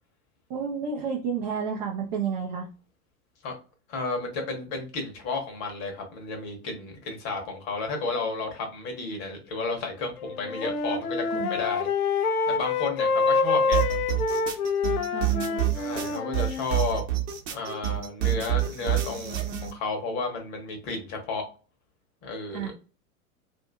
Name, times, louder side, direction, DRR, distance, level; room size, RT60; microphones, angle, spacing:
voice 1, 0.5-2.7 11.3-11.6 15.1-15.7 22.5-22.7, right 6 dB, 30° right, 0 dB, 0.5 m, -31 dB
voice 2, 3.9-11.9 12.5-13.8 15.7-17.0 17.5-21.4 22.2-22.6, left 3 dB, 35° left, 3 dB, 1.0 m, -32 dB
Wind instrument woodwind instrument, 10.2-16.7, left 4 dB, 75° left, 0.5 m, -26 dB
sound 1, 13.7-19.7, right 13 dB, 55° right, 0.8 m, -28 dB
2.6 x 2.5 x 2.2 m, 0.35 s
figure-of-eight pair, 90°, 44 cm